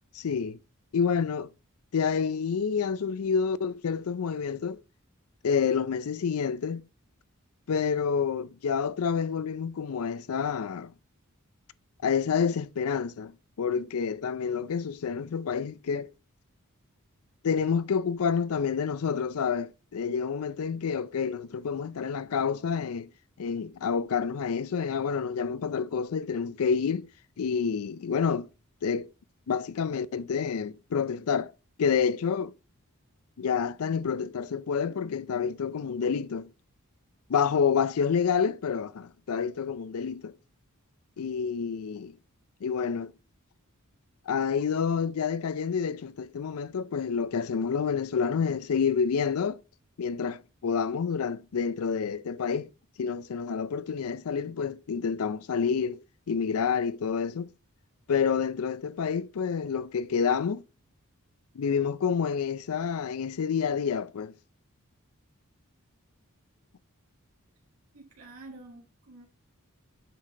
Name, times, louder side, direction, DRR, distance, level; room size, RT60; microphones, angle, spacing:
voice 1, 0.1-0.6 0.9-1.5 1.9-4.8 5.4-6.8 7.7-10.9 12.0-16.1 17.4-23.1 23.4-27.1 27.4-28.5 28.8-29.1 29.5-31.5 31.8-32.5 33.4-36.5 37.3-40.3 41.2-42.1 42.6-43.1 44.3-49.6 50.0-52.7 53.0-56.0 56.3-57.5 58.1-60.6 61.6-64.3, left 6 dB, 75° left, 0.4 m, -28 dB
voice 2, 67.9-69.3, right 2 dB, 75° right, 2.1 m, -48 dB
8.3 x 5.7 x 3.8 m
head